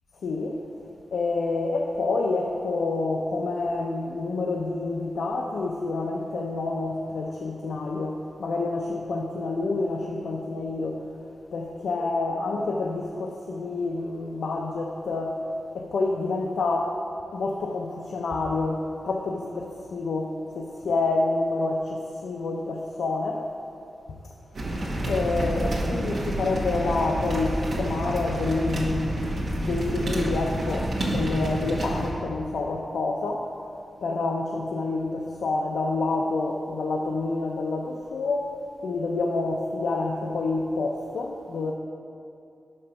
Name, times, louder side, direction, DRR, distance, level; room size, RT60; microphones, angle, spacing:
voice 1, 0.2-11.0 11.5-15.4 15.7-17.0 17.3-23.5 25.1-29.2 29.6-33.5 34.0-38.5 38.8-41.7, left 3 dB, 85° left, 0 dB, 0.5 m, -28 dB
sound 1, 24.5-32.1, right 1 dB, 50° right, 1.2 m, -28 dB
5.8 x 5.5 x 6.7 m, 2.6 s
wide cardioid pair, 170°, 0 cm